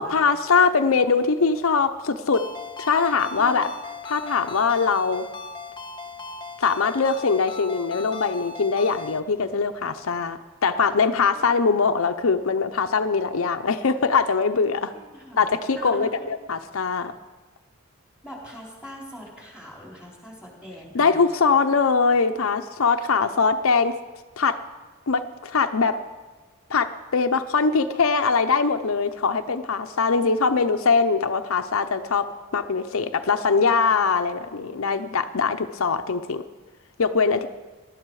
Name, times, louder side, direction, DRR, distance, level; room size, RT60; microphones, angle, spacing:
voice 1, 0.0-2.4 2.8-3.7 4.0-5.2 6.6-14.9 15.4-17.1 20.9-23.9 24.4-24.6 25.1-26.0 26.7-32.3 32.5-36.4 37.0-37.5, left 5 dB, 75° left, 7 dB, 0.7 m, -22 dB
Ringtone, 2.3-9.2, left 4 dB, 20° left, 0.8 m, -37 dB
voice 2, 14.9-16.3 18.2-21.2, equal, 5° right, -3 dB, 3.8 m, -42 dB
19.5 x 12.0 x 4.8 m, 1.3 s
head